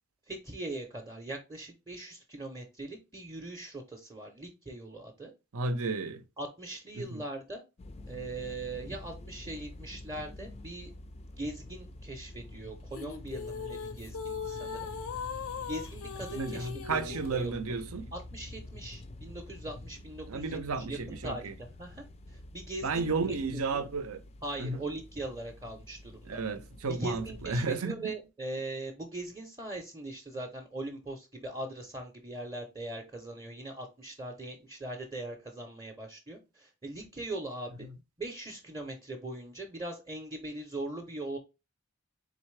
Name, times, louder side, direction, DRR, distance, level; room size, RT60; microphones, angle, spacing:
voice 1, 0.3-5.3 6.4-7.6 8.1-10.9 11.4-14.9 15.7-17.6 18.1-23.9 24.4-26.4 26.9-37.9 38.2-41.4, right 2 dB, 20° right, 0.6 m, -41 dB
voice 2, 5.5-6.2 6.9-7.2 16.3-18.1 20.3-21.5 22.8-24.2 24.6-24.8 26.2-28.1, right 3 dB, 85° right, 0.7 m, -33 dB
sound 1, 7.8-27.6, left 1 dB, 30° left, 0.3 m, -47 dB
sound 2, 12.9-17.5, left 6 dB, 80° left, 0.5 m, -39 dB
4.0 x 3.7 x 3.2 m
head